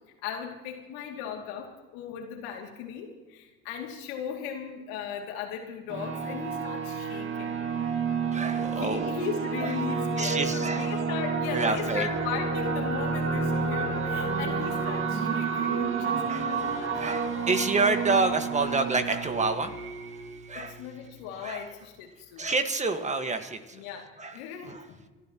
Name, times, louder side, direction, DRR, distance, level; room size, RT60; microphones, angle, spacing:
voice 1, 0.2-7.6 8.7-17.1 20.5-22.5 23.7-25.0, left 7 dB, 85° left, 2 dB, 2.6 m, -37 dB
sound 1, 5.9-21.2, right 5 dB, 40° right, 2.0 m, -30 dB
voice 2, 8.3-9.1 9.6-10.9 11.5-12.1 16.3-16.7 17.0-19.7 20.5-20.8 21.4-21.6 22.4-23.8 24.2-24.4 24.7-24.8, right 3 dB, 25° right, 7 dB, 1.6 m, -28 dB
30.0 x 12.5 x 3.0 m, 1.2 s
supercardioid pair, 90°, 30 cm